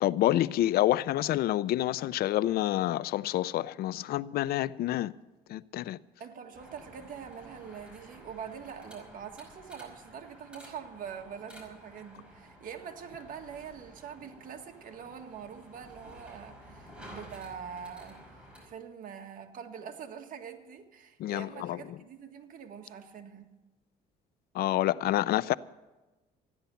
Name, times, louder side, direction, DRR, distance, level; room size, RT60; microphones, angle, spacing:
voice 1, 0.0-5.1 5.5-6.0 21.2-21.8 24.5-25.6, left 14 dB, 65° left, 0.5 m, -28 dB
voice 2, 6.2-23.5, right 7 dB, 55° right, 1.7 m, -44 dB
sound 1, 6.5-18.7, equal, 5° right, 5.2 m, -52 dB
14.5 x 10.5 x 7.1 m
cardioid pair, 110°, 17 cm